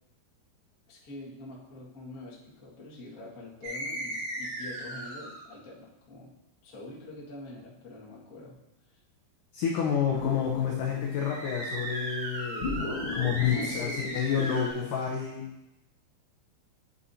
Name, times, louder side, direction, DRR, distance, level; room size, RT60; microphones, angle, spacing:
voice 1, 0.9-6.3 6.6-8.6 8.9-9.0 13.4-15.0, left 2 dB, 65° left, -6 dB, 0.8 m, -44 dB
sound 1, 3.6-5.5 11.1-14.7, right 1 dB, 75° right, 5.4 m, -36 dB
voice 2, 9.5-12.8 13.1-15.4, left 8 dB, 85° left, 0 dB, 1.8 m, -29 dB
sound 2, 10.1-11.6 12.6-15.0, left 3 dB, 45° left, 1.8 m, -37 dB
9.9 x 8.5 x 2.8 m, 0.92 s
omnidirectional pair, 4.9 m